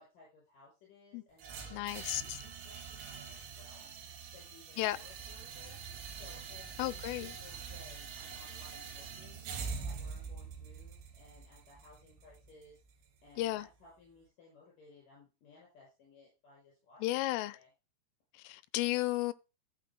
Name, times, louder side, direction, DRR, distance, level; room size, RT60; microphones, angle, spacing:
voice 1, 0.0-3.9 4.3-5.8 6.1-9.5 9.8-12.8 13.2-17.7, left 3 dB, 45° left, 7.3 m, -59 dB
sound 1, 1.4-13.4, right 5 dB, 85° right, 4.8 m, -45 dB
voice 2, 1.7-2.4 4.8-5.0 6.8-7.3 13.4-13.7 17.0-17.6 18.4-19.3, left 17 dB, 85° left, 3.2 m, -33 dB
14.5 x 8.7 x 2.2 m
omnidirectional pair, 5.6 m